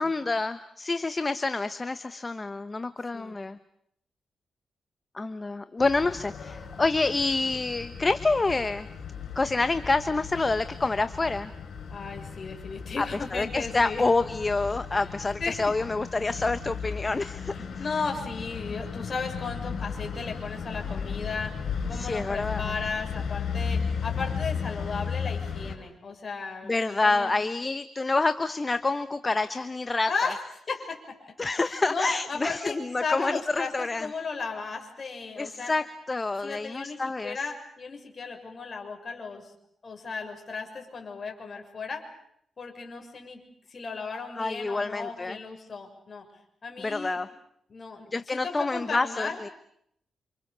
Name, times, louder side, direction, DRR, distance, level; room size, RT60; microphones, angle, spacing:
voice 1, 0.0-3.6 5.1-8.9 9.3-11.5 13.0-13.1 13.3-17.5 21.9-22.7 26.6-30.3 31.4-34.1 35.4-37.4 44.4-45.4 46.8-47.3 48.1-49.5, left 3 dB, 25° left, 12 dB, 1.0 m, -27 dB
sound 1, 5.8-25.8, left 6 dB, 75° left, 6.4 m, -35 dB
voice 2, 11.9-14.0 15.4-15.6 17.5-21.6 21.9-27.3 30.1-30.4 30.7-31.3 31.9-35.7 36.4-39.5 39.8-42.0 42.6-43.4 43.7-46.2 46.6-47.2 47.7-49.3, left 4 dB, 45° left, 4 dB, 6.7 m, -35 dB
28.5 x 27.0 x 6.9 m, 0.71 s
cardioid pair, 90°, 0 cm